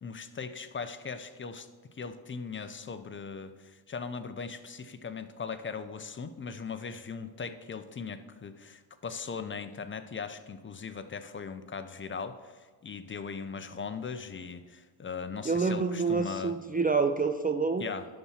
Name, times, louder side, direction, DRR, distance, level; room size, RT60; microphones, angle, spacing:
voice 1, 0.0-1.7 1.9-16.5 17.8-18.1, left 5 dB, 25° left, 10 dB, 0.6 m, -39 dB
voice 2, 15.4-17.9, right 4 dB, 20° right, 7 dB, 0.4 m, -27 dB
11.0 x 4.2 x 7.2 m, 1.5 s
cardioid pair, 105°, 47 cm